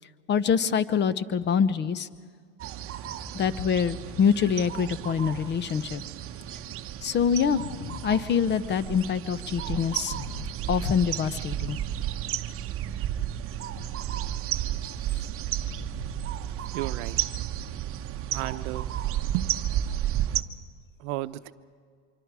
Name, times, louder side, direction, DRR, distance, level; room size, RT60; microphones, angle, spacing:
voice 1, 0.3-2.1 3.3-6.0 7.0-11.8, left 7 dB, 30° left, 16 dB, 0.9 m, -25 dB
sound 1, 2.6-20.4, right 12 dB, 35° right, 1.0 m, -32 dB
voice 2, 16.7-17.1 18.3-18.9 19.3-19.5 21.0-21.5, right 17 dB, 65° right, 12 dB, 0.9 m, -32 dB
26.0 x 24.5 x 4.9 m, 2.1 s
supercardioid pair, 110°, 38 cm